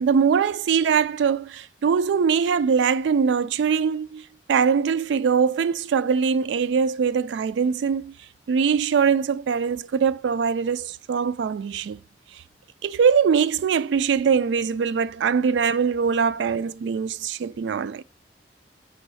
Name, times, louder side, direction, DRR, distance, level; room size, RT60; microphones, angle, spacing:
voice 1, 0.0-4.2 4.5-8.1 8.5-12.0 12.8-18.0, right 6 dB, 90° right, 0.3 m, -22 dB
6.2 x 3.0 x 5.4 m
head